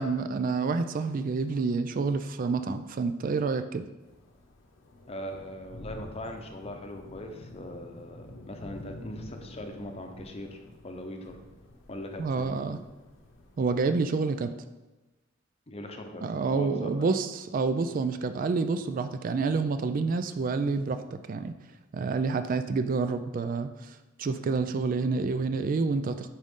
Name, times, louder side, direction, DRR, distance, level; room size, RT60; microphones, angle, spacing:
voice 1, 0.0-3.9 12.2-12.8 13.6-14.5 16.2-21.6 21.9-26.3, right 4 dB, 45° right, 9 dB, 0.3 m, -28 dB
sound 1, 4.0-13.8, left 1 dB, 70° left, 0.9 m, -48 dB
voice 2, 5.1-11.4 11.9-12.5 15.7-16.2 16.5-17.1, left 1 dB, 30° left, 4 dB, 0.7 m, -40 dB
9.1 x 3.7 x 3.7 m, 1.1 s
head